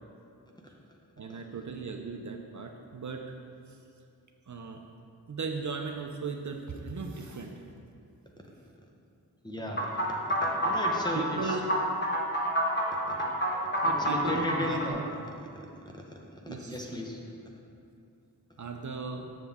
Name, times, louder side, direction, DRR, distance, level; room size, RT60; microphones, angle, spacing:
voice 1, 1.2-3.4 4.5-4.8 5.3-7.5 11.1-11.7 13.8-15.1 16.5-16.9 18.6-19.3, right 4 dB, 50° right, 3 dB, 0.5 m, -37 dB
voice 2, 9.4-9.9 10.4-11.6 13.1-13.2 13.8-15.1 16.4-17.5, left 1 dB, 10° left, -1 dB, 0.9 m, -35 dB
sound 1, 9.8-14.9, right 1 dB, 30° left, 1.2 m, -28 dB
7.4 x 7.0 x 3.5 m, 2.5 s
wide cardioid pair, 100°, 38 cm